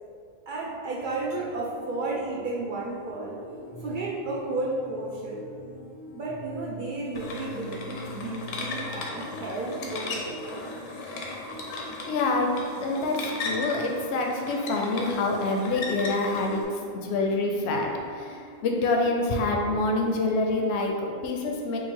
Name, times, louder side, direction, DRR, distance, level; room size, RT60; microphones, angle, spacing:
voice 1, 0.5-3.4 3.8-5.4 6.1-10.6, right 2 dB, 60° right, -4 dB, 0.5 m, -33 dB
sound 1, 1.0-20.9, left 1 dB, 30° left, 0.6 m, -45 dB
sound 2, 7.1-16.6, left 2 dB, 85° left, 1.0 m, -37 dB
voice 2, 12.1-12.5 12.8-16.6 16.9-21.8, left 2 dB, 65° left, 1 dB, 0.8 m, -26 dB
3.8 x 2.4 x 4.4 m, 2.3 s
omnidirectional pair, 1.3 m